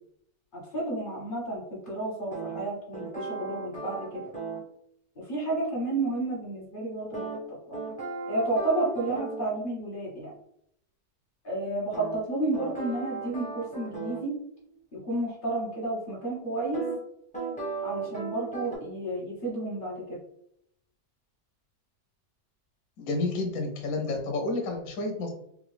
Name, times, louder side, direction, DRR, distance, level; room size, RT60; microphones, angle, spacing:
voice 1, 0.5-4.2 5.2-7.3 7.7-7.8 8.3-10.3 11.4-14.3 14.9-16.8 17.8-20.2, right 2 dB, 35° left, -5 dB, 1.2 m, -31 dB
sound 1, 2.3-4.7 7.1-9.5 11.9-14.3 16.7-17.0 17.3-18.8, right 4 dB, 5° left, 0.6 m, -36 dB
voice 2, 23.0-25.3, left 2 dB, 60° left, 2 dB, 1.0 m, -30 dB
3.3 x 2.5 x 3.2 m, 0.72 s
omnidirectional pair, 1.9 m